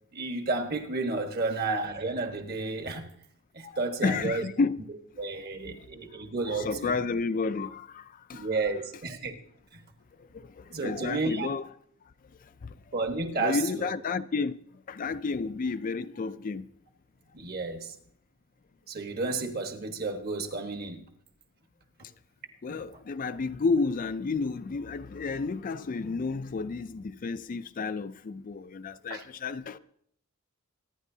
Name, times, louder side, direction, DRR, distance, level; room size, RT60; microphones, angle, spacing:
voice 1, 0.1-3.1 3.5-4.4 5.2-6.9 8.3-9.4 9.7-9.8 10.7-11.5 12.9-13.9 17.3-17.9 18.9-21.1 22.7-22.8 29.1-29.2, right 3 dB, 50° right, 1.3 m, -32 dB
voice 2, 3.6-4.8 5.3-5.9 6.1-8.5 10.2-11.7 12.4-16.7 22.6-29.8, left 4 dB, 40° left, 0.4 m, -32 dB
24.0 x 9.9 x 2.7 m
head